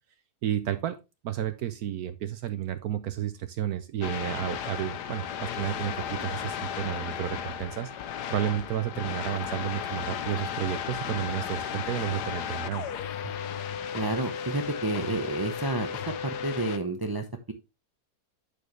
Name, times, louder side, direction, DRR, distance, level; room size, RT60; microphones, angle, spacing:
voice 1, 0.4-1.0 1.2-7.9 8.3-12.9, right 11 dB, 70° right, 10 dB, 1.1 m, -31 dB
sound 1, 4.0-16.8, left 8 dB, 90° left, 1.4 m, -34 dB
voice 2, 13.9-15.9 16.4-17.5, right 2 dB, 35° right, 6 dB, 0.3 m, -30 dB
8.7 x 6.4 x 3.2 m, 0.26 s
omnidirectional pair, 1.7 m